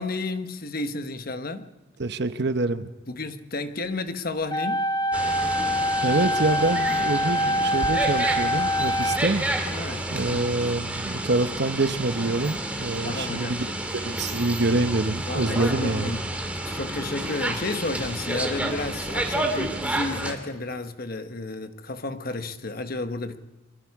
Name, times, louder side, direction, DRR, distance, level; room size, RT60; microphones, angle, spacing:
voice 1, 0.0-1.7 3.1-4.9 9.7-10.5 13.0-13.6 15.3-16.3 16.6-23.4, left 2 dB, 50° left, 1.1 m, -32 dB
voice 2, 2.0-2.9 6.0-9.4 10.1-13.7 14.0-16.1, right 2 dB, 60° right, 1.0 m, -26 dB
sound 1, 4.5-9.5, equal, 20° left, 0.6 m, -25 dB
sound 2, 5.1-20.3, right 1 dB, 5° right, 2.4 m, -30 dB
25.5 x 22.5 x 4.8 m
head